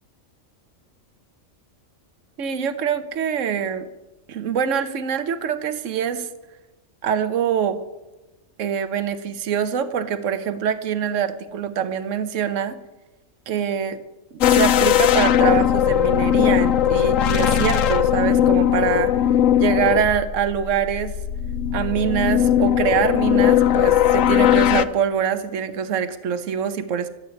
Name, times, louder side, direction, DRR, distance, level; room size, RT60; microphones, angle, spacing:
voice 1, 2.4-3.8 4.3-6.3 7.0-7.8 8.6-12.8 13.5-14.0 14.5-19.1 19.6-21.1 21.7-27.1, right 8 dB, 70° right, 11 dB, 1.3 m, -24 dB
sound 1, 14.4-24.8, left 10 dB, 80° left, 1.1 m, -18 dB
13.5 x 8.4 x 9.3 m, 1.1 s
omnidirectional pair, 1.4 m